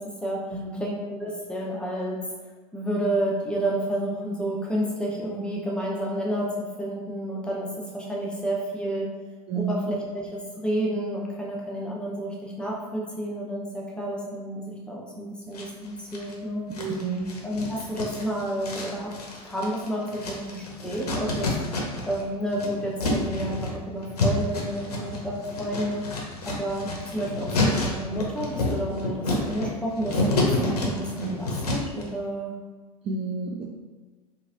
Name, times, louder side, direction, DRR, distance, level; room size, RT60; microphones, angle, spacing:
voice 1, 0.0-2.2 2.7-7.7 7.9-9.1 9.5-16.6 17.4-19.1 19.4-21.5 22.0-26.0 26.5-32.5, right 1 dB, 5° left, -4 dB, 0.6 m, -30 dB
voice 2, 0.5-0.8 9.5-9.9 16.8-17.3 33.0-33.6, right 4 dB, 30° right, -2 dB, 0.3 m, -30 dB
sound 1, 15.5-16.3 16.7-22.2 22.5-32.0, left 2 dB, 85° left, 0.6 m, -29 dB
2.9 x 2.5 x 2.5 m, 1.4 s
hypercardioid pair, 80°, 20 cm